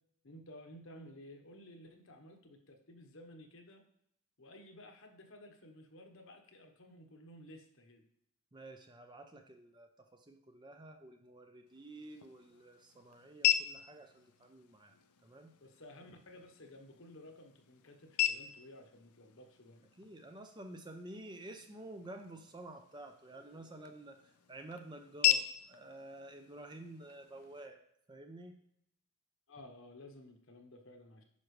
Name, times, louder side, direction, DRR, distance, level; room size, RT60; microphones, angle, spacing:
voice 1, 0.2-3.8 4.4-8.0 15.6-19.8 29.5-31.2, left 1 dB, 60° left, 4 dB, 1.1 m, -54 dB
voice 2, 8.5-14.9 15.2-15.5 20.0-27.8 28.1-28.6, right 1 dB, 20° right, 5 dB, 0.6 m, -51 dB
sound 1, 11.7-27.7, left 11 dB, 90° left, 0.6 m, -39 dB
9.5 x 6.0 x 3.2 m, 0.73 s
head